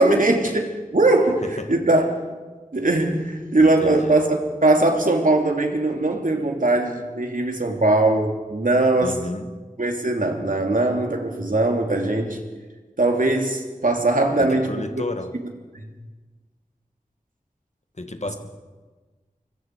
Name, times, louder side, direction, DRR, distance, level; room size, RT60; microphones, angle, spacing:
voice 1, 0.0-1.4 1.7-2.1 2.7-4.3 4.6-9.1 9.8-12.4 13.0-15.0 15.7-15.9, right 2 dB, 70° right, 2 dB, 2.9 m, -20 dB
voice 2, 3.6-4.2 9.0-9.5 14.4-15.3 18.0-18.3, left 2 dB, 50° left, 7 dB, 1.9 m, -31 dB
24.0 x 22.5 x 4.8 m, 1.3 s
wide cardioid pair, 45°, 14 cm